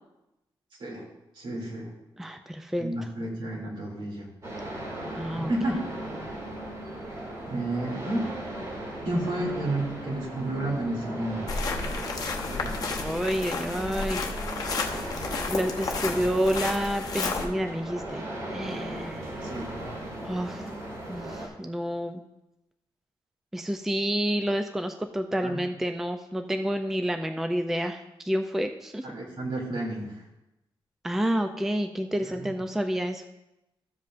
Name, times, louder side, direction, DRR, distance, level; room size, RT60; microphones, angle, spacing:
voice 1, 1.3-1.9 2.8-4.3 5.3-5.8 7.5-8.3 9.0-11.5 19.4-19.7 25.4-25.6 29.0-30.1 32.3-32.5, right 1 dB, 65° right, -2 dB, 2.6 m, -31 dB
voice 2, 2.2-2.9 5.2-5.5 13.0-14.2 15.5-18.2 18.5-19.5 20.2-20.7 21.1-22.2 23.5-29.2 31.0-33.2, equal, 5° right, 6 dB, 0.3 m, -29 dB
sound 1, 4.4-21.5, right 1 dB, 35° right, 2.3 m, -37 dB
sound 2, 11.5-17.5, left 4 dB, 45° left, 0.8 m, -32 dB
13.5 x 7.6 x 2.5 m, 0.94 s
wide cardioid pair, 160°, 9 cm